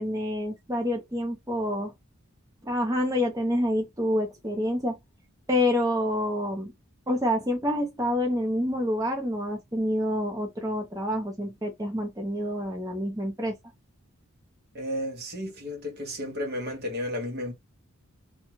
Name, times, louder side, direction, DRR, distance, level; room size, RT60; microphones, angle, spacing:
voice 1, 0.0-1.9 2.6-5.0 5.5-6.7 7.1-13.6, left 1 dB, 15° right, 0.7 m, -27 dB
voice 2, 14.7-17.5, left 1 dB, 45° right, 1.2 m, -33 dB
2.7 x 2.3 x 2.9 m
head